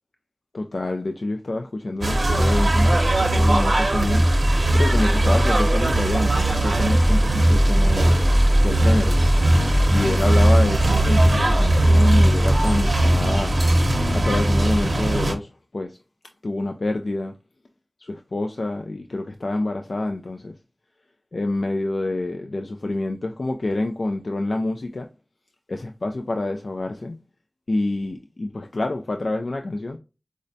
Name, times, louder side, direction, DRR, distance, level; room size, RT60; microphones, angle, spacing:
voice 1, 0.5-4.3 4.7-8.1 8.6-9.2 9.9-13.6 14.1-16.0 16.4-17.3 18.0-20.5 21.3-25.1 25.7-27.2 27.7-30.0, left 2 dB, 85° left, 0.3 m, -27 dB
sound 1, 2.0-15.3, right 1 dB, 85° right, 0.6 m, -18 dB
4.8 x 2.1 x 2.6 m
wide cardioid pair, 55°, 0 cm